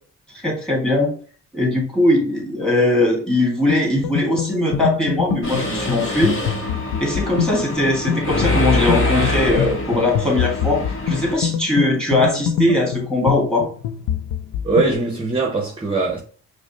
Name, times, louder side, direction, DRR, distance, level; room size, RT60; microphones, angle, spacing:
voice 1, 0.3-1.1 1.5-6.4 7.0-13.7, left 1 dB, 5° left, 1.8 m, -20 dB
sound 1, 3.7-14.9, left 8 dB, 80° left, 0.5 m, -25 dB
Mechanisms, 5.4-11.3, left 2 dB, 40° left, 1.1 m, -24 dB
voice 2, 14.6-16.2, right 3 dB, 15° right, 0.7 m, -21 dB
4.8 x 2.1 x 3.0 m
cardioid pair, 90°, 30 cm